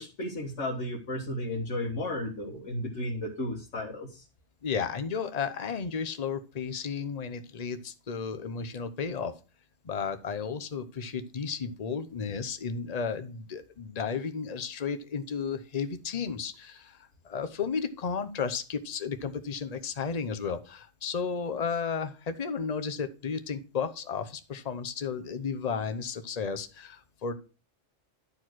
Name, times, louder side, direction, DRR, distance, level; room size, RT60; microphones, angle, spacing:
voice 1, 0.0-4.3, left 1 dB, 85° left, -2 dB, 1.9 m, -34 dB
voice 2, 4.6-9.3 9.8-27.3, left 6 dB, 35° left, 9 dB, 0.9 m, -33 dB
11.5 x 4.6 x 6.2 m, 0.33 s
omnidirectional pair, 1.2 m